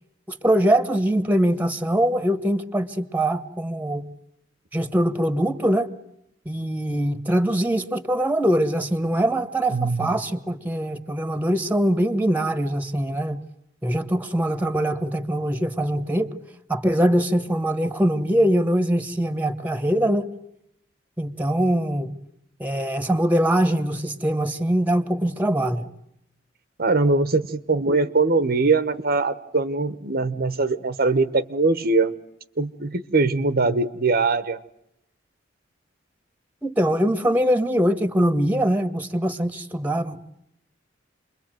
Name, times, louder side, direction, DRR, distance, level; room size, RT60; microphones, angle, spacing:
voice 1, 0.3-4.1 4.7-5.9 6.4-13.4 13.8-16.3 16.7-20.3 21.2-22.1 22.6-25.9 36.6-40.3, right 1 dB, 10° right, 1.6 m, -22 dB
voice 2, 9.7-10.1 26.8-32.1 32.6-34.6, right 3 dB, 50° right, 1.2 m, -22 dB
28.5 x 22.5 x 9.2 m
head